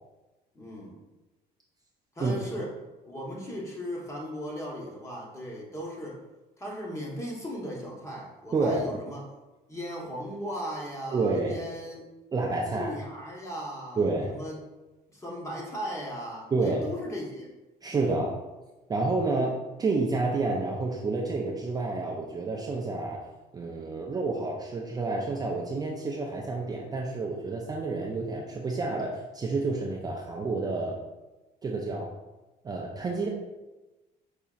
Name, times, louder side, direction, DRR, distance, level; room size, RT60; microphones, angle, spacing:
voice 1, 0.5-1.0 2.1-2.7 3.1-6.2 6.6-9.2 9.7-12.0 12.7-14.6 15.1-17.5 17.9-18.2 19.3-19.5 30.3-30.4, equal, 15° left, -3 dB, 1.1 m, -37 dB
voice 2, 8.5-8.9 11.1-11.6 12.3-12.9 14.0-14.4 16.5-16.8 17.8-18.3 18.9-19.5 19.8-23.3 23.5-31.0 31.6-32.1 32.6-33.3, right 3 dB, 25° right, -1 dB, 0.4 m, -29 dB
5.0 x 2.8 x 2.4 m, 1.1 s
cardioid pair, 110°, 17 cm